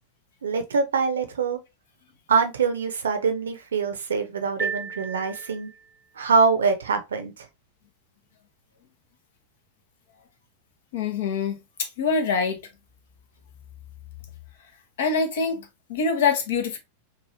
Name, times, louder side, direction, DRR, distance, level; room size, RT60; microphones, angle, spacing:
voice 1, 0.4-1.6 2.3-5.7 6.2-7.5, right 5 dB, 65° right, 0.6 m, -24 dB
sound 1, 4.6-6.1, right 5 dB, 15° right, 0.4 m, -34 dB
voice 2, 10.9-12.6 15.0-16.8, left 5 dB, 55° left, 0.8 m, -25 dB
3.2 x 2.4 x 2.6 m
figure-of-eight pair, 90°, 0 cm